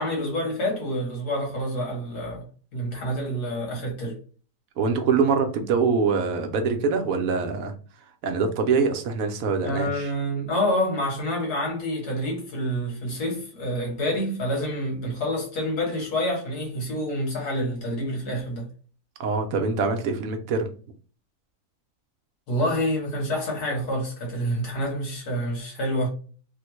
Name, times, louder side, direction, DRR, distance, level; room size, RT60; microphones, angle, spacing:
voice 1, 0.0-2.5 2.7-4.2 9.6-18.7 22.5-26.1, equal, 80° left, 1.7 m, -27 dB
voice 2, 4.8-7.7 8.2-10.1 19.2-20.7, right 5 dB, 70° right, 0.9 m, -24 dB
3.5 x 2.1 x 3.0 m
omnidirectional pair, 1.7 m